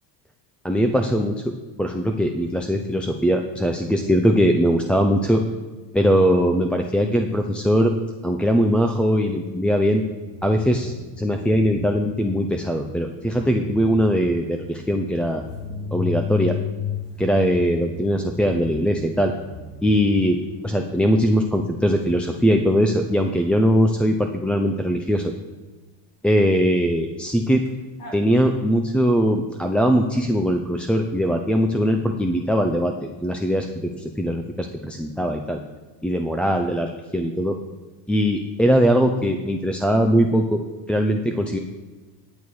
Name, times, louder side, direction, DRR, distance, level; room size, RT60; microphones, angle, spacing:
voice 1, 0.6-1.5 1.8-5.4 5.9-7.9 8.2-10.0 10.4-15.4 15.9-16.6 17.2-19.3 19.8-20.4 20.6-25.3 26.2-27.6 28.1-35.6 36.0-37.6 38.1-40.6 40.9-41.6, equal, ahead, 2 dB, 0.5 m, -21 dB
sound 1, 10.0-21.5 27.7-27.8 28.0-28.2, left 6 dB, 45° left, 3.8 m, -35 dB
10.5 x 8.5 x 4.7 m, 1.3 s
supercardioid pair, 120°, 49 cm